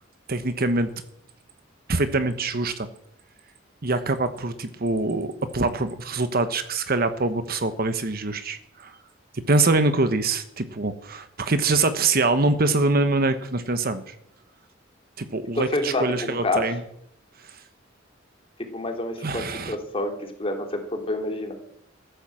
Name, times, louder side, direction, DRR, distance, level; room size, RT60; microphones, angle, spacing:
voice 1, 0.3-0.9 1.9-2.9 3.8-8.9 9.3-14.1 15.2-16.8 17.5-17.6 19.2-19.8, right 3 dB, 50° right, 10 dB, 1.1 m, -24 dB
voice 2, 15.7-16.6 18.7-21.5, left 2 dB, 30° left, 3 dB, 3.0 m, -28 dB
14.5 x 11.5 x 7.6 m, 0.72 s
head